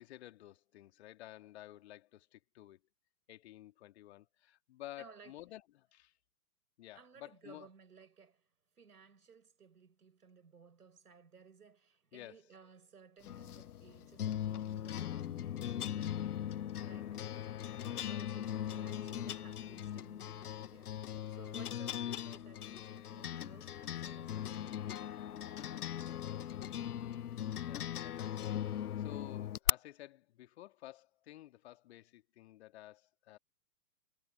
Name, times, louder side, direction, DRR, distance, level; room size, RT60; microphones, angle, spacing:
voice 1, 0.0-2.8 3.3-6.1 6.8-7.7 12.1-12.4 27.6-33.4, left 14 dB, 45° left, 2.3 m, -53 dB
voice 2, 5.0-5.3 6.9-8.5 8.8-17.2 17.9-20.9 21.3-26.0, right 6 dB, 70° right, 4.6 m, -59 dB
sound 1, 13.2-29.7, left 10 dB, 70° left, 0.6 m, -39 dB
figure-of-eight pair, 115°, 47 cm